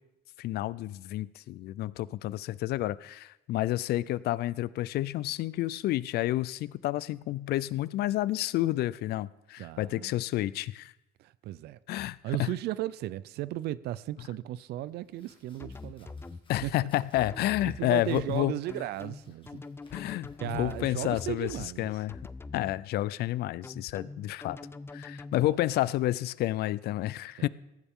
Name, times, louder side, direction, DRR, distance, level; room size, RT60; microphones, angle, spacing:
voice 1, 0.4-10.9 11.9-12.5 16.5-18.5 19.9-21.5 21.8-22.2 22.5-24.6 24.9-27.5, left 15 dB, 70° left, 0.5 m, -30 dB
voice 2, 9.6-10.1 11.2-11.8 12.2-16.2 16.6-16.7 17.6-19.6 20.0-20.1 20.4-21.9 25.4-25.6 27.4-27.5, right 14 dB, 75° right, 0.5 m, -36 dB
Domestic sounds home sounds, 14.9-22.6, left 4 dB, 30° left, 2.0 m, -59 dB
sound 1, 15.6-16.7 17.1-17.8 18.7-21.7 22.1-22.7 23.6-25.5, left 3 dB, 15° left, 0.5 m, -43 dB
18.5 x 14.5 x 3.7 m
cardioid pair, 110°, 17 cm